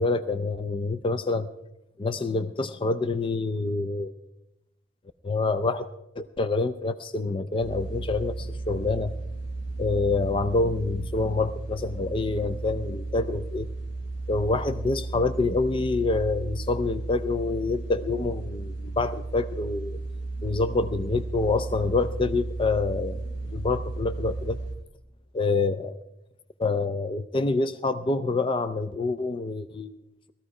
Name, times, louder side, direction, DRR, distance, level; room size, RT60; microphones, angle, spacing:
voice 1, 0.0-1.5 2.0-4.1 5.2-5.9 6.2-9.1 9.8-13.7 14.3-20.0 20.4-23.2 23.4-24.6 25.3-26.0 26.6-30.0, left 3 dB, 30° left, 11 dB, 0.4 m, -27 dB
sound 1, 7.6-24.8, right 2 dB, 80° left, 4.6 m, -34 dB
18.5 x 13.5 x 4.8 m, 0.90 s
head